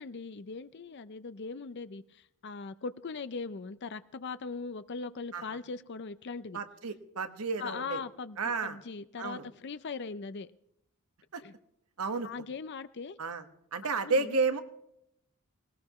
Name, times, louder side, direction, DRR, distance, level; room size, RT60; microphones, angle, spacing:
voice 1, 0.0-6.6 7.6-8.4 8.6-10.5 11.4-11.5 12.2-13.2 14.0-14.4, left 4 dB, 50° left, 13 dB, 0.5 m, -40 dB
voice 2, 6.5-8.0 8.4-8.8 9.2-9.4 11.3-11.4 12.0-12.3 13.2-13.4 13.7-14.6, right 4 dB, 85° right, 8 dB, 1.4 m, -31 dB
19.5 x 19.0 x 3.1 m, 0.75 s
head